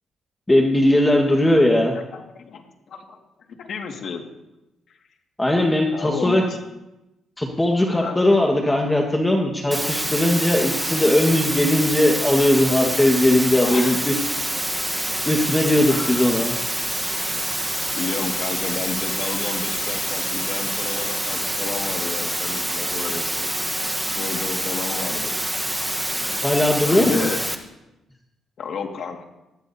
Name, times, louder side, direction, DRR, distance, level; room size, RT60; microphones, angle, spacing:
voice 1, 0.5-1.9 5.4-6.4 7.4-14.1 15.2-16.5 26.4-27.3, left 1 dB, 15° left, 1 dB, 1.6 m, -19 dB
voice 2, 2.1-3.2 3.5-4.2 5.9-6.5 7.9-8.2 13.6-14.0 15.9-16.3 18.0-23.5 24.0-25.7 26.8-27.4 28.6-29.3, left 5 dB, 60° left, 3 dB, 2.0 m, -31 dB
white noise ruido blanco, 9.7-27.6, right 1 dB, 10° right, 1.2 m, -26 dB
18.5 x 14.0 x 2.8 m, 0.95 s
cardioid pair, 90°, 0 cm